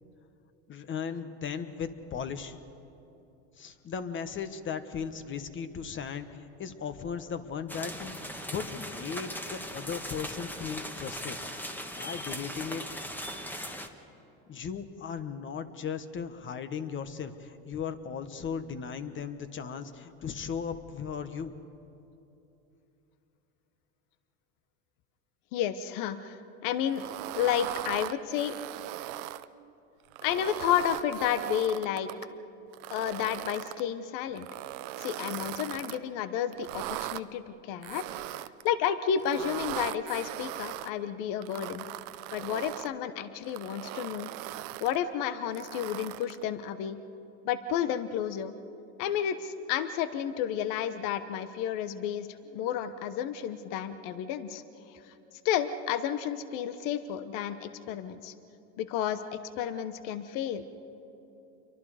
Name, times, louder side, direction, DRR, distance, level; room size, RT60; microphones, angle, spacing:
voice 1, 0.7-2.6 3.6-8.1 8.5-11.4 11.9-12.8 14.5-21.5, left 6 dB, 35° left, 10 dB, 1.3 m, -37 dB
sound 1, 7.7-13.9, equal, 5° left, 1.4 m, -39 dB
voice 2, 25.5-27.0 27.4-28.5 30.2-32.1 32.9-34.5 35.0-38.0 38.6-41.8 42.3-44.3 44.8-47.0 47.4-48.5 49.0-54.6 54.9-55.1 55.4-58.4 58.8-60.6, left 9 dB, 60° left, 12 dB, 1.2 m, -31 dB
sound 2, 26.9-29.5 30.0-32.3 32.7-33.8 34.4-36.0 36.5-37.2 37.8-38.7 39.2-40.9 41.4-42.9 43.4-45.0 45.5-46.4, right 17 dB, 70° right, 0.8 m, -39 dB
28.0 x 23.5 x 5.0 m, 2.9 s
supercardioid pair, 110°, 36 cm